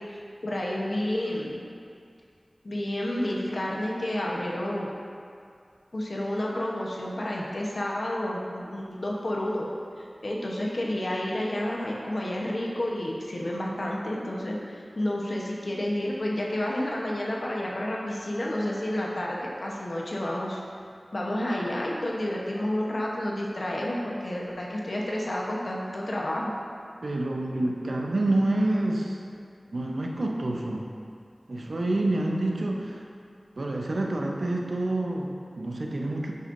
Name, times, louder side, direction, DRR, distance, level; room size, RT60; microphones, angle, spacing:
voice 1, 0.1-1.6 2.6-5.0 5.9-9.7 10.0-20.6 21.1-26.5, left 1 dB, 75° left, -3 dB, 0.9 m, -30 dB
voice 2, 27.0-29.2 29.7-30.9 31.5-33.0 33.6-36.3, right 2 dB, 85° right, 0 dB, 0.6 m, -28 dB
8.0 x 5.2 x 2.6 m, 2.3 s
wide cardioid pair, 65°, 0 cm